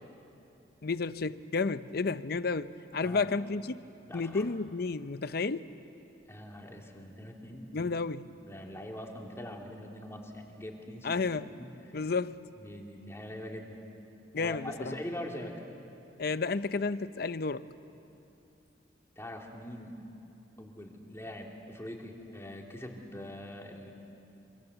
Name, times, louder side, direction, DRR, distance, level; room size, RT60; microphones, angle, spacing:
voice 1, 0.8-3.8 4.1-5.7 7.7-8.3 11.0-11.5 11.9-12.4 14.3-14.9 16.2-17.7, left 4 dB, 60° left, 14 dB, 0.7 m, -31 dB
voice 2, 4.1-4.5 6.3-7.9 8.4-11.3 11.6-11.7 12.6-13.8 14.3-15.5 19.2-20.0 20.6-23.9, left 1 dB, 15° left, 0 dB, 3.0 m, -43 dB
27.0 x 26.0 x 8.1 m, 2.8 s
head